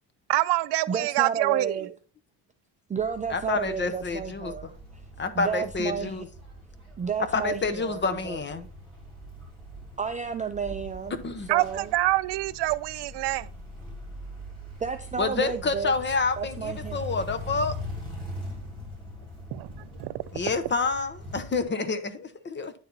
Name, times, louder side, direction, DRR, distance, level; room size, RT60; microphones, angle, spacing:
voice 1, 0.3-1.8 11.5-13.5 19.5-20.2, right 17 dB, 80° right, 0.5 m, -26 dB
voice 2, 0.9-1.9 2.9-4.8 5.3-6.2 7.0-8.7 10.0-11.2 11.5-11.9 14.8-15.9 16.4-17.0, right 6 dB, 20° right, 0.4 m, -32 dB
sound 1, 3.0-21.6, left 1 dB, 10° left, 3.0 m, -42 dB
voice 3, 3.3-4.6 5.2-6.3 7.3-8.7 11.2-11.5 15.2-17.8 20.3-22.7, left 4 dB, 25° left, 0.8 m, -28 dB
9.8 x 4.2 x 3.9 m
cardioid pair, 135°, 41 cm